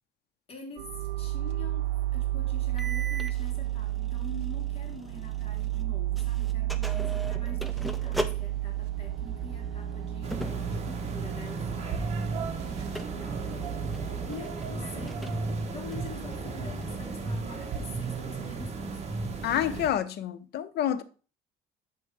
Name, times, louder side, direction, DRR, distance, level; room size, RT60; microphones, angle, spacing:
voice 1, 0.5-11.7 12.7-13.9 14.3-19.2, left 2 dB, 30° left, 1.8 m, -46 dB
sound 1, 0.8-14.3, right 14 dB, 65° right, 0.6 m, -32 dB
sound 2, 2.8-5.9 6.2-17.3, right 1 dB, ahead, 0.5 m, -41 dB
sound 3, 10.2-19.9, right 3 dB, 35° right, 1.0 m, -34 dB
voice 2, 19.4-21.0, left 10 dB, 65° left, 0.6 m, -28 dB
7.3 x 3.1 x 4.6 m
cardioid pair, 125°, 18 cm